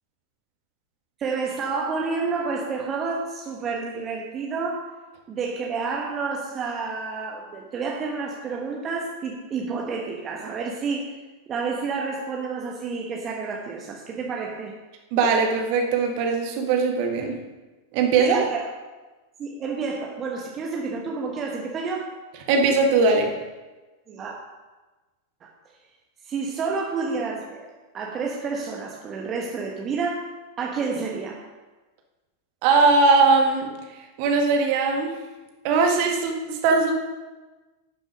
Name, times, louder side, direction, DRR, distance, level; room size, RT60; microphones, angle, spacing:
voice 1, 1.2-4.9 5.3-11.1 11.5-14.7 18.2-18.6 19.4-22.1 24.1-24.4 25.4-25.5 26.2-30.3 30.6-31.4, right 4 dB, 25° right, -1 dB, 1.3 m, -29 dB
voice 2, 15.1-17.3 17.9-18.4 22.5-23.3 32.6-35.1 35.6-36.9, right 4 dB, 45° right, 2 dB, 1.7 m, -20 dB
11.0 x 6.8 x 5.3 m, 1.2 s
figure-of-eight pair, 90°, 0 cm